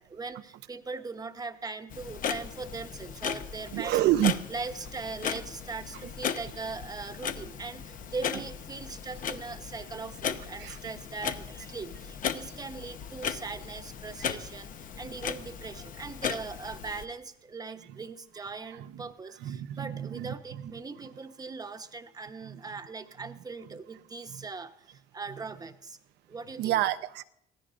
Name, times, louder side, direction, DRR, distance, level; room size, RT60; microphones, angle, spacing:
voice 1, 0.0-4.0 4.5-26.0 26.3-26.8, right 4 dB, 20° right, 8 dB, 1.0 m, -40 dB
Clock, 1.9-17.1, left 7 dB, 50° left, 0.9 m, -37 dB
voice 2, 3.7-4.4 10.6-10.8 18.7-19.1 19.4-20.3 20.6-20.7 22.5-22.6 24.3-24.4 26.6-27.2, right 13 dB, 80° right, 12 dB, 0.7 m, -28 dB
25.0 x 16.5 x 2.6 m, 0.77 s
cardioid pair, 110°, 17 cm